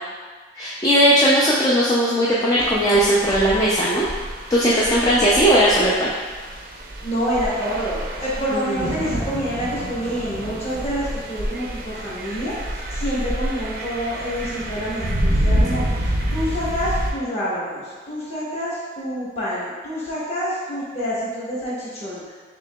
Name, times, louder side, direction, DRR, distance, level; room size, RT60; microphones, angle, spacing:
voice 1, 0.5-4.0 4.5-6.1 8.5-8.8, equal, 20° left, -7 dB, 0.4 m, -18 dB
sound 1, 2.6-17.1, right 1 dB, 45° right, 0.5 m, -28 dB
voice 2, 7.0-22.4, equal, 35° left, -8 dB, 1.2 m, -27 dB
6.8 x 2.8 x 2.3 m, 1.5 s
head